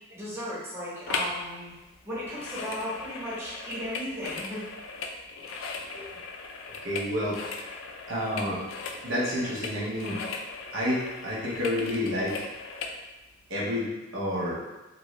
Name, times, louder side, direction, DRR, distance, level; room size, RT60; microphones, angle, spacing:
voice 1, 0.1-1.7 2.0-4.6, equal, 10° right, -9 dB, 1.0 m, -35 dB
sound 1, 1.1-1.4 1.7-13.0 13.5-13.6, left 4 dB, 80° left, 0.4 m, -38 dB
voice 2, 5.6-6.1 6.8-7.7 8.1-8.6 9.0-10.2 10.7-12.3 13.5-14.6, left 1 dB, 90° right, -6 dB, 0.9 m, -30 dB
3.0 x 2.5 x 3.1 m, 1.1 s
head